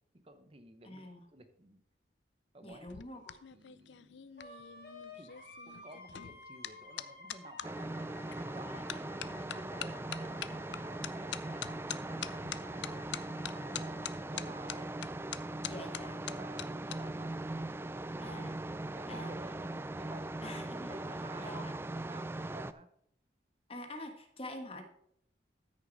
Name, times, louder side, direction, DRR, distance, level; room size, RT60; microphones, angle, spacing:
voice 1, 0.1-1.0 1.3-1.8 2.5-3.3 3.5-4.3 5.1-5.3 5.6-8.8 9.2-14.9 16.3-18.3 18.7-20.6 20.9-22.9, right 2 dB, 35° right, 8 dB, 0.9 m, -54 dB
voice 2, 0.8-1.2 2.6-3.3 8.7-9.0 15.7-16.3 18.2-18.6 19.1-19.4 20.4-21.0 21.4-21.7 23.7-24.8, left 1 dB, 35° left, 5 dB, 1.4 m, -46 dB
sound 1, 2.7-7.7 8.3-8.6 8.9-17.0 17.3-17.6, left 11 dB, 90° left, 0.5 m, -44 dB
Wind instrument woodwind instrument, 4.4-14.2, left 2 dB, 60° left, 2.7 m, -53 dB
sound 2, 7.6-22.7, right 2 dB, 15° right, 0.3 m, -40 dB
13.5 x 6.6 x 4.0 m, 0.68 s
head